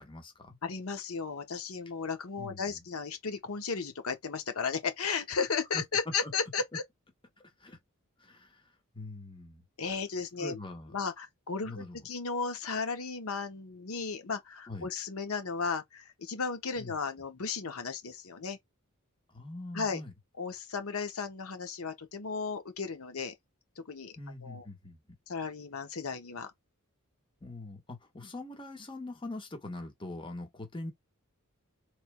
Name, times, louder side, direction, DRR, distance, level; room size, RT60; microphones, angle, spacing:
voice 1, 0.0-0.6 2.4-2.8 5.7-5.8 6.2-6.3 7.4-7.8 8.2-9.6 10.4-10.9 11.6-12.1 14.7-14.9 16.8-17.0 19.3-20.1 24.2-25.0 27.4-30.9, left 2 dB, 25° left, 1.2 m, -43 dB
voice 2, 0.6-6.8 9.8-10.6 10.9-18.6 19.7-20.0 20.4-23.3 23.8-24.2 24.4-24.6 25.3-26.5, left 5 dB, 75° left, 0.8 m, -35 dB
4.3 x 3.3 x 2.2 m
head